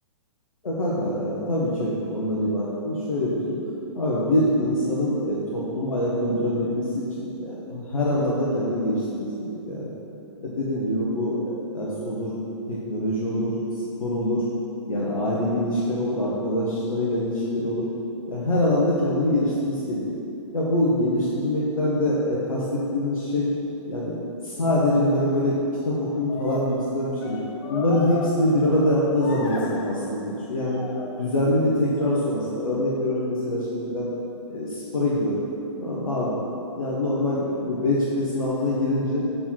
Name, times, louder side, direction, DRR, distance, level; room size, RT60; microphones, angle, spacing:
voice 1, 0.6-3.6 3.9-9.0 9.4-9.9 10.4-12.4 12.7-13.6 14.0-14.4 14.9-17.9 18.3-20.0 20.5-23.5 23.9-24.1 24.4-25.6 25.8-27.4 27.7-30.8 31.2-34.1 34.5-35.5 35.8-36.3 36.8-39.2, left 1 dB, 90° left, -6 dB, 1.1 m, -24 dB
sound 1, 25.1-25.5 26.3-28.9 29.2-30.2 30.6-31.5, left 2 dB, 45° left, 0.7 m, -36 dB
6.7 x 3.8 x 4.4 m, 2.8 s
hypercardioid pair, 130°, 17 cm